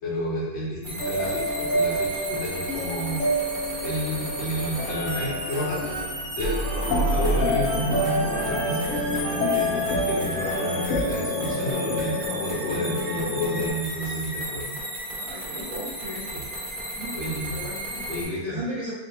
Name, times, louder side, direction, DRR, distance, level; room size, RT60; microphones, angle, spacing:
voice 1, 0.0-3.2 3.8-5.9 6.3-8.9 9.5-14.8 17.1-17.6 18.1-18.6, equal, 70° left, -7 dB, 1.9 m, -31 dB
sound 1, 0.8-18.2, right 1 dB, 35° right, 0.8 m, -34 dB
sound 2, 1.0-13.7, equal, 90° left, 0.6 m, -27 dB
sound 3, 4.7-10.9, right 2 dB, 70° right, 1.4 m, -36 dB
voice 2, 15.2-16.3 16.9-17.1 17.5-18.9, equal, 55° right, -7 dB, 1.2 m, -36 dB
4.2 x 2.2 x 4.0 m, 1.1 s
omnidirectional pair, 2.2 m